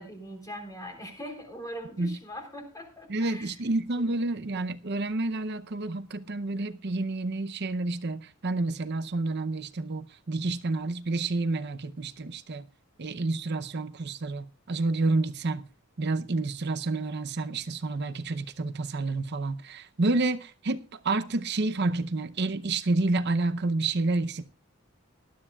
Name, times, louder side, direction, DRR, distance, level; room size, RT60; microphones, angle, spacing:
voice 1, 0.0-4.1, equal, 15° left, 3.9 m, -42 dB
voice 2, 3.1-12.7 13.0-15.7 16.0-24.4, right 2 dB, 55° right, 0.7 m, -29 dB
19.5 x 12.5 x 2.4 m
head